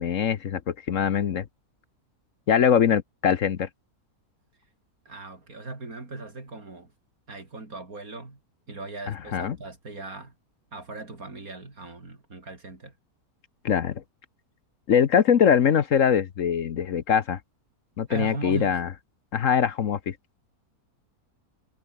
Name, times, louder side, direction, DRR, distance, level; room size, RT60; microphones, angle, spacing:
voice 1, 0.0-1.4 2.5-3.7 9.1-9.6 13.6-14.0 14.9-17.4 18.0-18.9 19.3-20.2, left 8 dB, 60° left, 1.2 m, -22 dB
voice 2, 5.1-6.9 7.3-8.4 8.7-10.3 10.7-12.9 18.1-18.8, right 3 dB, 65° right, 4.7 m, -38 dB
omnidirectional pair, 1.6 m